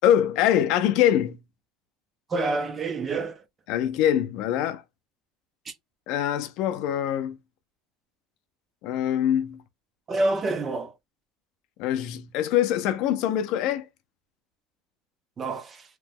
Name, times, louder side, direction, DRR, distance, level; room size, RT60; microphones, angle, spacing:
voice 1, 0.0-1.4 3.7-4.8 6.1-7.4 8.8-9.6 11.8-13.8, left 11 dB, 55° left, 0.4 m, -23 dB
voice 2, 2.3-3.4 10.1-10.9 15.4-15.8, right 2 dB, 20° right, 0.4 m, -27 dB
2.9 x 2.2 x 3.4 m
cardioid pair, 170°, 0 cm